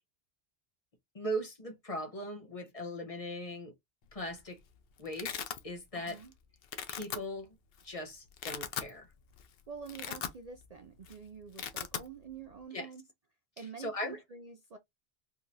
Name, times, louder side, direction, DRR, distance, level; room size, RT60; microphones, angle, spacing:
voice 1, 1.1-3.7 4.1-4.6 5.0-6.2 6.9-7.5 7.8-9.1 12.7-12.9 13.6-14.2, equal, 35° left, 0.8 m, -39 dB
Domestic sounds home sounds, 4.1-4.5 4.7-5.6 6.1-6.3 6.6-7.2 7.8-7.9 8.3-8.9 9.3-9.5 9.8-10.7 11.0-11.1 11.4-12.1, left 8 dB, 65° left, 0.8 m, -39 dB
voice 2, 5.9-6.3 9.7-13.0 13.6-14.8, right 6 dB, 50° right, 0.5 m, -47 dB
3.6 x 3.0 x 2.5 m
omnidirectional pair, 1.1 m